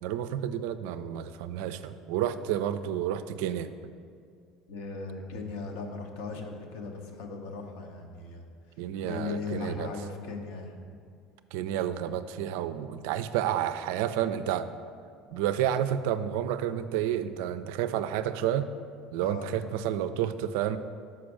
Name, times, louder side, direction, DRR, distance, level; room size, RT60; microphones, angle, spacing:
voice 1, 0.0-3.7 8.8-9.9 11.5-14.7 15.3-18.7 19.1-20.8, right 10 dB, 75° right, 12 dB, 0.3 m, -30 dB
voice 2, 4.7-8.5 9.0-10.8 19.2-19.5, left 4 dB, 70° left, 3 dB, 0.9 m, -37 dB
5.8 x 5.1 x 6.2 m, 2.2 s
hypercardioid pair, 70°, 0 cm